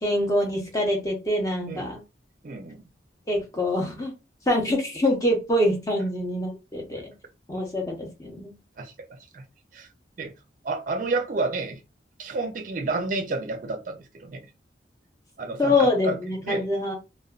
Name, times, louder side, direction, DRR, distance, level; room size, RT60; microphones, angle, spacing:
voice 1, 0.0-2.0 3.3-4.1 4.5-7.1 7.5-8.5 15.6-16.9, left 1 dB, 15° left, 0.7 m, -25 dB
voice 2, 2.4-2.8 8.8-9.4 9.7-9.9 10.2-10.3 10.6-11.8 12.2-14.4 15.4-16.2 16.4-16.6, right 3 dB, 45° right, 0.4 m, -30 dB
2.4 x 2.2 x 2.3 m
head